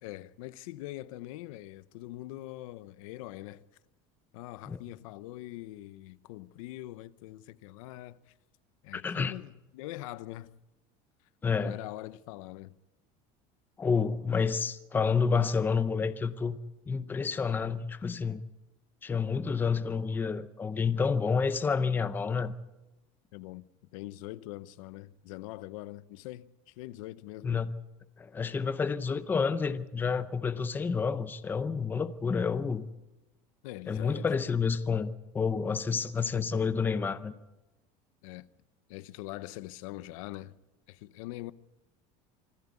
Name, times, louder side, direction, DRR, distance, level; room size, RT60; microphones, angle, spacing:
voice 1, 0.0-3.6 4.3-8.3 8.8-10.5 11.6-12.8 23.3-23.7 23.9-27.6 33.6-34.4 38.2-38.4 38.9-40.6 40.9-41.5, left 16 dB, 85° left, 0.9 m, -43 dB
voice 2, 8.9-9.3 11.4-11.7 13.8-16.6 16.9-18.4 19.0-22.5 27.4-27.7 28.2-32.9 33.9-37.3, left 5 dB, 10° left, 0.6 m, -29 dB
25.5 x 13.5 x 8.3 m
cardioid pair, 175°, 17 cm